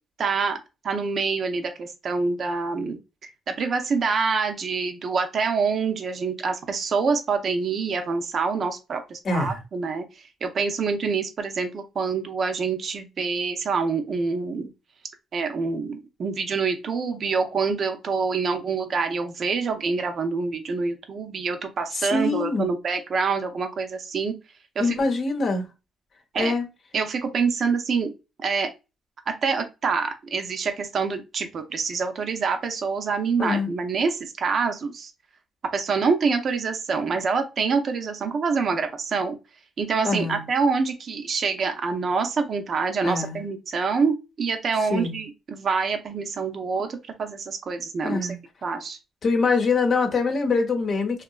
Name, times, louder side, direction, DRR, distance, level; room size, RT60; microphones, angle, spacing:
voice 1, 0.2-0.6 0.8-3.0 3.5-10.0 10.4-14.7 15.3-24.3 24.8-25.0 26.3-26.5 26.9-28.1 28.4-28.7 29.3-35.1 35.7-39.4 39.8-48.2 48.6-49.0, right 5 dB, 50° right, 0.5 m, -26 dB
voice 2, 9.2-9.6 21.9-22.7 24.8-25.7 26.4-26.7 33.4-33.7 40.0-40.4 43.0-43.4 44.9-45.2 48.0-48.4 49.2-51.2, left 3 dB, 50° left, 0.7 m, -24 dB
2.8 x 2.3 x 2.3 m
cardioid pair, 90°, 0 cm